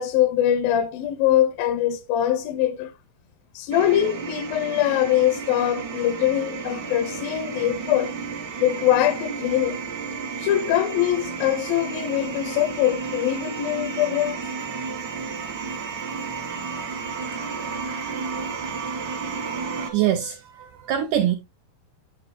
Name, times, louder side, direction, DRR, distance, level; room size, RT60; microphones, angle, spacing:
voice 1, 0.0-2.9 3.5-8.1 8.6-9.8 10.4-14.5 16.7-16.9 17.2-18.3, left 12 dB, 80° left, 2.3 m, -23 dB
sound 1, 3.7-19.9, right 5 dB, 65° right, 1.1 m, -32 dB
voice 2, 19.5-21.4, right 11 dB, 85° right, 1.8 m, -25 dB
7.7 x 7.7 x 2.6 m
omnidirectional pair, 4.4 m